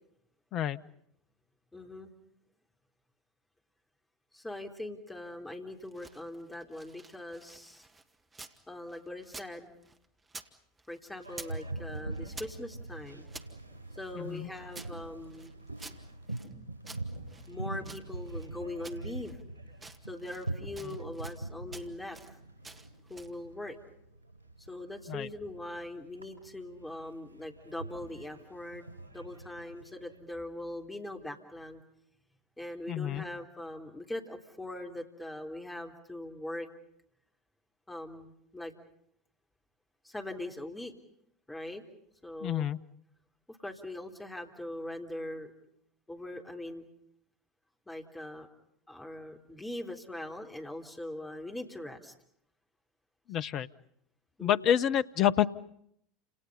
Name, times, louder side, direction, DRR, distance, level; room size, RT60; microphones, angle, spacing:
voice 1, 1.7-2.1 4.3-7.9 8.7-9.7 10.9-13.3 14.0-15.5 17.5-19.4 20.1-22.4 23.1-23.8 24.7-28.8 29.1-31.8 32.6-36.7 37.9-38.7 40.0-40.9 41.5-41.8 42.2-42.7 43.5-45.5 46.1-46.9 47.9-48.5 48.9-52.1 54.4-54.8, left 1 dB, 10° left, 3 dB, 3.7 m, -41 dB
sound 1, 5.7-8.6 8.9-10.5 10.8-11.6 11.9-13.5 14.0-16.5 16.8-18.5 18.8-19.4 19.7-20.5 20.7-21.4 21.7-22.3 22.6-23.4, right 3 dB, 15° right, 2.0 m, -50 dB
Boat Water vehicle, 11.2-30.2, right 2 dB, 90° left, 5.0 m, -44 dB
voice 2, 14.2-14.5 25.1-25.3 32.9-33.2 42.4-42.8 53.3-53.7 54.4-55.5, left 10 dB, 40° left, 14 dB, 0.9 m, -28 dB
30.0 x 28.0 x 5.6 m, 0.74 s
figure-of-eight pair, 75°, 0 cm